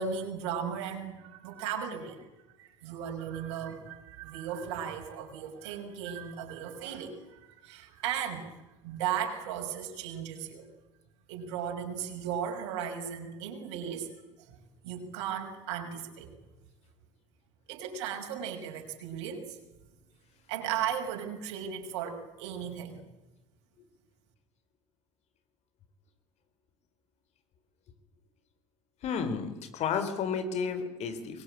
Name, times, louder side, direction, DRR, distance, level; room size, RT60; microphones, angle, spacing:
voice 1, 0.0-2.3 2.6-8.5 8.8-10.7 11.3-14.1 14.5-16.3 17.7-19.6 20.5-23.0, right 8 dB, 60° right, 3 dB, 6.1 m, -36 dB
voice 2, 29.0-31.4, left 6 dB, 45° left, 9 dB, 4.4 m, -32 dB
25.5 x 22.0 x 8.8 m, 1.0 s
figure-of-eight pair, 65°, 16 cm